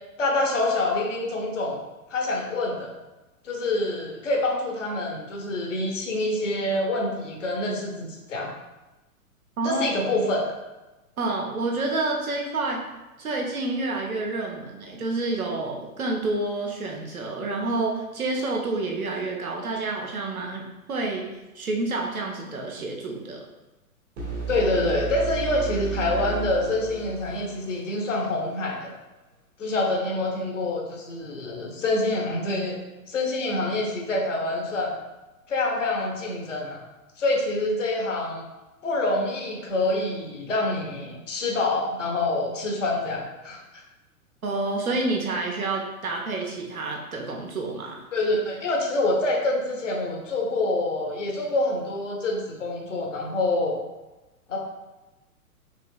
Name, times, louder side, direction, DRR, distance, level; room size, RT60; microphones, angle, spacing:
voice 1, 0.2-1.8 2.1-2.9 3.4-8.5 9.6-10.4 24.5-28.9 29.6-32.8 33.1-34.9 35.5-36.8 37.2-38.4 38.8-43.8 48.1-53.8 54.5-54.6, left 2 dB, 55° left, 0 dB, 1.0 m, -26 dB
voice 2, 11.2-12.8 13.2-21.2 21.5-23.4 44.4-48.0, right 2 dB, 70° right, 0 dB, 1.0 m, -28 dB
sound 1, 24.2-28.0, right 6 dB, 45° right, 1.1 m, -33 dB
5.1 x 3.0 x 2.4 m, 1.1 s
figure-of-eight pair, 110°, 44 cm